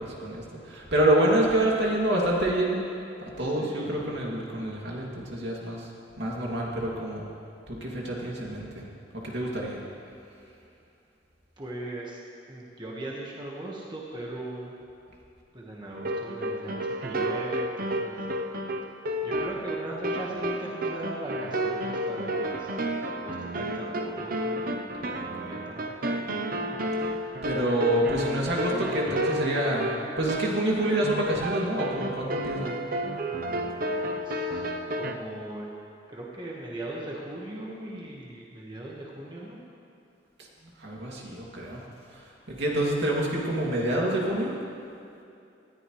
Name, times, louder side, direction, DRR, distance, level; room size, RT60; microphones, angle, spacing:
voice 1, 0.0-2.8 3.4-5.9 6.2-7.3 7.7-8.9 9.2-9.8 27.4-32.8 40.8-41.8 42.1-44.6, right 1 dB, 70° right, -3 dB, 2.6 m, -27 dB
voice 2, 3.4-3.9 11.6-14.7 15.5-18.3 19.2-22.7 23.2-26.4 33.3-35.7 36.1-39.6, right 1 dB, 25° right, -3 dB, 1.5 m, -39 dB
sound 1, 15.9-35.1, equal, 55° right, 0.8 m, -31 dB
19.0 x 13.5 x 3.2 m, 2.6 s
head